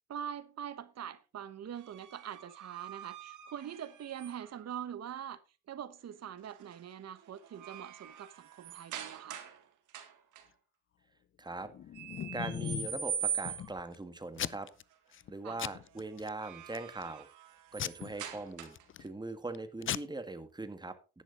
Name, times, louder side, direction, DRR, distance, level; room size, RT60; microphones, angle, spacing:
voice 1, 0.1-5.4 5.7-9.4 15.4-15.6, right 9 dB, 55° right, 1.1 m, -43 dB
sound 1, 1.8-4.7 6.4-6.8 7.2-9.6 9.9-10.4 11.9-13.8 16.1-19.0, right 8 dB, 80° right, 2.1 m, -42 dB
voice 2, 11.4-11.7 12.3-14.7 15.3-17.3 17.7-21.2, right 2 dB, 15° right, 1.6 m, -41 dB
Packing tape duct tape / Tearing, 11.6-13.0 13.5-14.0 14.4-14.8 15.1-15.3 15.6-16.3 16.8-17.1 17.8-19.1 19.5-19.6 19.8-20.0, left 10 dB, 45° left, 0.5 m, -38 dB
11.0 x 9.8 x 3.8 m
cardioid pair, 90°, 30 cm